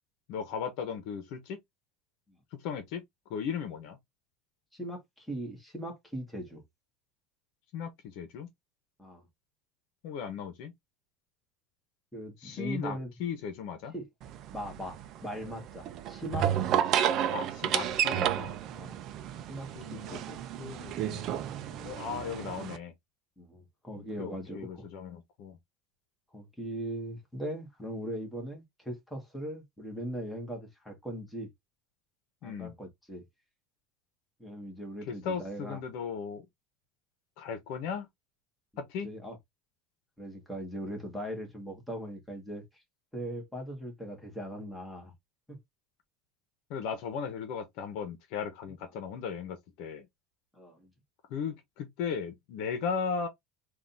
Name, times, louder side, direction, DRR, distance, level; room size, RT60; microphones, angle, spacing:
voice 1, 0.3-1.6 2.6-3.0 3.3-4.0 7.7-8.5 10.0-10.7 12.4-13.9 17.3-18.6 19.7-20.2 20.6-21.4 21.7-22.9 24.0-25.6 32.4-32.8 35.1-36.4 37.4-38.1 38.8-39.1 46.7-50.1 51.3-53.3, left 6 dB, 60° left, 1.2 m, -37 dB
voice 2, 4.7-6.6 9.0-9.3 12.1-13.1 13.9-14.1 14.5-16.8 18.7-19.0 19.5-20.4 23.4-24.9 26.3-31.5 32.4-33.2 34.4-35.8 39.0-39.4 40.2-42.7 43.1-45.1 45.5-45.6 50.5-50.9, equal, 5° left, 1.8 m, -40 dB
sound 1, 14.2-22.8, right 10 dB, 45° right, 0.6 m, -32 dB
3.9 x 2.7 x 4.0 m
cardioid pair, 155°, 0 cm